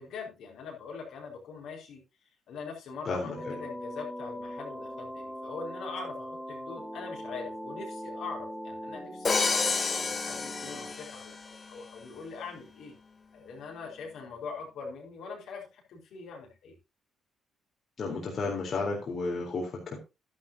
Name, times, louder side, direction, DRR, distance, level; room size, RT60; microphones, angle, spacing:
voice 1, 0.0-2.0 2.5-9.4 9.9-13.0 13.3-16.7, left 4 dB, 75° left, 0 dB, 4.8 m, -42 dB
voice 2, 3.1-3.6 18.0-20.0, left 3 dB, 55° left, 0 dB, 3.8 m, -32 dB
sound 1, 3.3-10.9, equal, 10° left, 2.4 m, -41 dB
Crash cymbal, 9.2-11.5, left 4 dB, 40° left, 1.6 m, -29 dB
12.0 x 11.5 x 2.8 m, 0.26 s
supercardioid pair, 70°, 0 cm